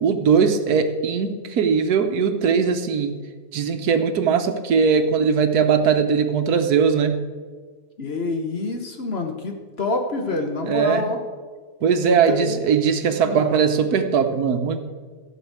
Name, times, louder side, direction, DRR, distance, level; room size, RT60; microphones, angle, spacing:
voice 1, 0.0-3.1 3.5-7.2 10.7-11.0 11.8-14.8, right 6 dB, 75° right, 8 dB, 1.4 m, -20 dB
voice 2, 8.0-11.2 12.0-12.6 13.2-13.5, left 3 dB, 45° left, 4 dB, 1.3 m, -27 dB
15.0 x 5.4 x 8.1 m, 1.5 s
omnidirectional pair, 1.7 m